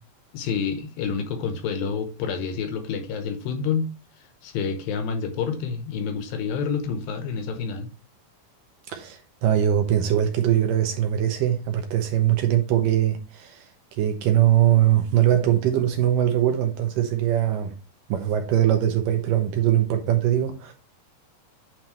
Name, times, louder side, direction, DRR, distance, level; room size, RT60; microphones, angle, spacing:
voice 1, 0.3-3.9 4.4-7.9, left 6 dB, 75° left, 2.6 m, -28 dB
voice 2, 8.9-17.7 18.1-20.7, right 11 dB, 75° right, 2.1 m, -22 dB
9.1 x 4.1 x 3.1 m
omnidirectional pair, 4.4 m